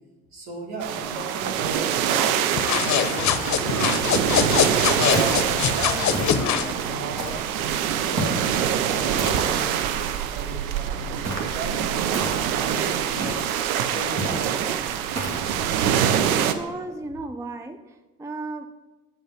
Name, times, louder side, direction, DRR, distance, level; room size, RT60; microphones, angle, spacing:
voice 1, 0.3-2.5 3.0-4.5 5.0-7.3 7.9-13.3 13.7-14.7, right 2 dB, 60° right, -2 dB, 3.1 m, -37 dB
sound 1, 0.8-16.5, right 9 dB, 75° right, 0.8 m, -25 dB
sound 2, 2.5-6.7, left 8 dB, 40° left, 0.9 m, -23 dB
sound 3, 5.1-5.6 6.1-6.6 7.2-7.6 8.2-8.5 9.2-9.7 11.2-11.6 12.1-12.6 13.2-13.6 14.2-14.5 15.1-15.5, right 2 dB, 35° right, 2.1 m, -31 dB
voice 2, 16.3-18.7, right 2 dB, 5° right, 9 dB, 0.5 m, -35 dB
7.2 x 5.3 x 7.4 m, 1.2 s
hypercardioid pair, 55°, 42 cm